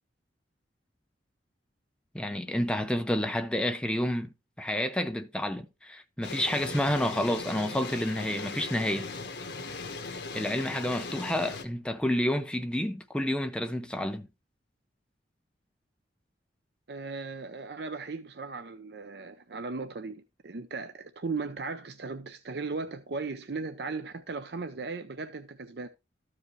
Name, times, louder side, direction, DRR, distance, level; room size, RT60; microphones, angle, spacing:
voice 1, 2.1-4.3 4.6-9.1 10.3-14.3, left 1 dB, 5° left, 0.6 m, -29 dB
sound 1, 6.2-11.6, left 3 dB, 80° left, 1.2 m, -39 dB
voice 2, 16.9-25.9, right 4 dB, 65° right, 0.6 m, -37 dB
13.5 x 4.9 x 3.1 m
head